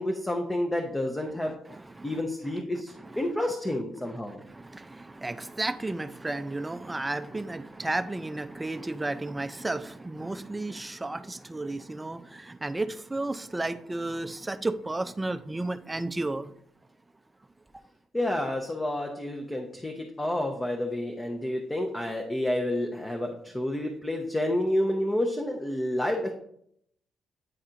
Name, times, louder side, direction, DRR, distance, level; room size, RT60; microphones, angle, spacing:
voice 1, 0.0-1.5 2.0-4.4 18.1-26.3, left 1 dB, 15° left, 0.7 m, -29 dB
voice 2, 1.7-2.2 3.1-3.2 4.1-16.5, right 2 dB, 15° right, 0.4 m, -33 dB
9.0 x 4.2 x 2.5 m
cardioid pair, 90°, 0 cm